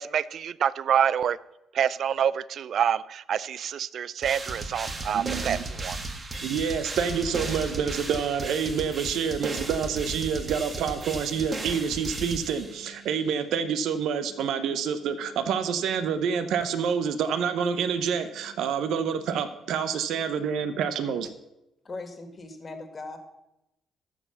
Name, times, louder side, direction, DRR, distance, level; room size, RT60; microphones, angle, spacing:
voice 1, 0.0-1.4 1.7-6.0, right 8 dB, 65° right, 20 dB, 0.4 m, -27 dB
sound 1, 4.2-13.0, right 2 dB, 35° right, 1.6 m, -35 dB
voice 2, 5.1-5.6 6.4-21.3, right 7 dB, 80° right, 11 dB, 0.8 m, -28 dB
voice 3, 21.8-23.2, left 3 dB, 35° left, 7 dB, 1.8 m, -39 dB
13.0 x 4.9 x 6.8 m, 0.90 s
cardioid pair, 90°, 0 cm